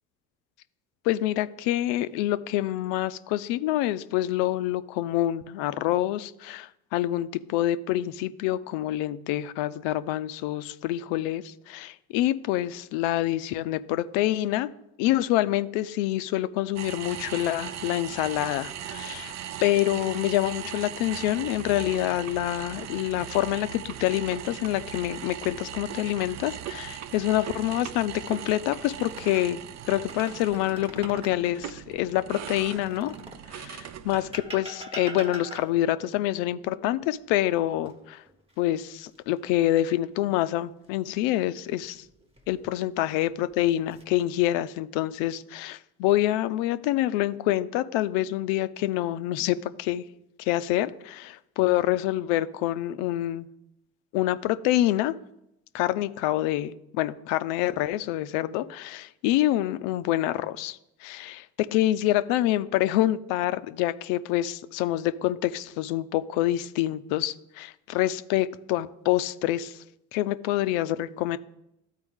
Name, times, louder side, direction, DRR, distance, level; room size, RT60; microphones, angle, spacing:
voice 1, 1.0-14.7 15.0-19.3 19.6-29.6 29.9-33.1 33.5-38.2 38.6-42.0 42.5-50.0 50.4-53.5 54.1-55.1 55.7-69.8 70.1-71.4, left 14 dB, 70° left, 13 dB, 0.5 m, -26 dB
sound 1, 16.8-34.5, right 11 dB, 40° right, 0.4 m, -39 dB
sound 2, 28.1-29.5 29.9-31.5 32.4-33.5 34.1-35.9 37.9-38.5 38.9-39.2 42.1-42.7 43.4-44.0, right 1 dB, 10° right, 1.1 m, -43 dB
12.5 x 4.4 x 3.6 m, 0.83 s
hypercardioid pair, 65°, 47 cm